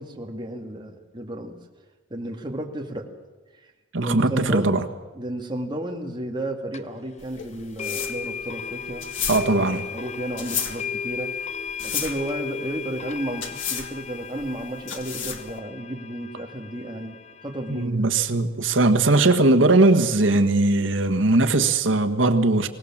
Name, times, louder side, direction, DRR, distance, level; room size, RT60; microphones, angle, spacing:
voice 1, 0.0-1.6 2.1-3.1 3.6-3.7 4.0-4.7 5.1-9.1 9.9-11.3 11.8-18.1, right 1 dB, 25° right, 2.3 m, -32 dB
voice 2, 3.9-4.8 9.3-9.9 17.7-22.7, right 2 dB, 80° right, 1.5 m, -19 dB
sound 1, 6.7-6.8 7.8-17.9, left 6 dB, 35° left, 0.8 m, -35 dB
sound 2, 7.2-15.6, left 7 dB, 75° left, 1.9 m, -33 dB
24.5 x 17.5 x 7.4 m
head